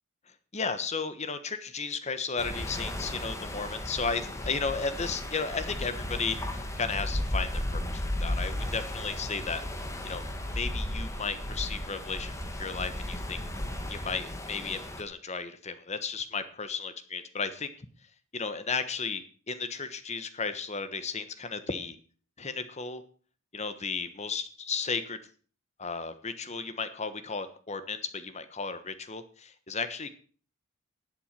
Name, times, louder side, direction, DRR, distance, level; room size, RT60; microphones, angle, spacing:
voice 1, 0.5-9.6 10.0-10.2 10.6-13.4 13.9-17.7 18.3-22.0 22.4-23.0 23.5-25.2 25.8-30.1, left 5 dB, 35° left, 11 dB, 1.2 m, -34 dB
sound 1, 2.4-15.0, left 1 dB, 15° left, 1.8 m, -35 dB
12.0 x 8.0 x 7.6 m, 0.43 s
head